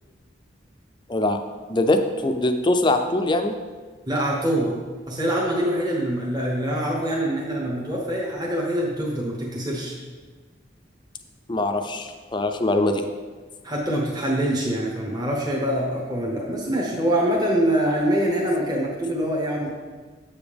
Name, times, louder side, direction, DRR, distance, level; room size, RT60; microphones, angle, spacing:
voice 1, 1.7-3.5 11.5-13.0, left 2 dB, 25° left, 6 dB, 0.4 m, -22 dB
voice 2, 4.1-4.8 5.1-9.9 13.6-19.7, right 1 dB, 20° right, -3 dB, 1.0 m, -24 dB
7.6 x 7.0 x 3.5 m, 1.4 s
head